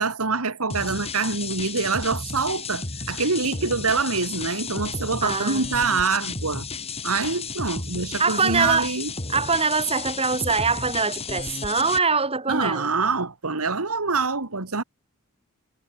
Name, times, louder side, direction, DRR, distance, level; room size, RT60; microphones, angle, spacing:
voice 1, 0.0-6.7 7.0-9.1 12.5-14.8, right 4 dB, 85° right, 2.2 m, -25 dB
sound 1, 0.7-12.0, left 4 dB, 30° left, 5.1 m, -33 dB
voice 2, 5.2-5.7 8.2-8.9 9.3-12.9, right 4 dB, 25° right, 4.3 m, -23 dB
head